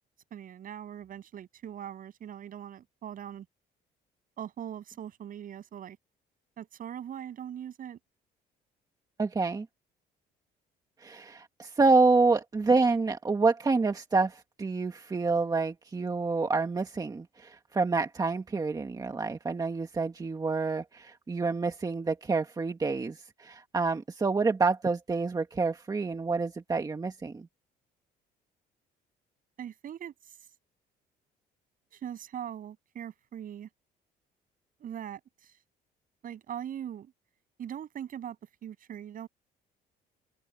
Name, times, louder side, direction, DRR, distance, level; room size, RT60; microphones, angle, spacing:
voice 1, 0.3-3.5 4.4-6.0 6.6-8.0 29.6-30.4 31.9-33.7 34.8-35.5 36.2-37.1 37.6-38.4 38.6-39.3, right 10 dB, 55° right, 7.8 m, -41 dB
voice 2, 9.2-9.7 11.0-27.5, right 3 dB, 20° right, 1.8 m, -28 dB
cardioid pair, 110°, 17 cm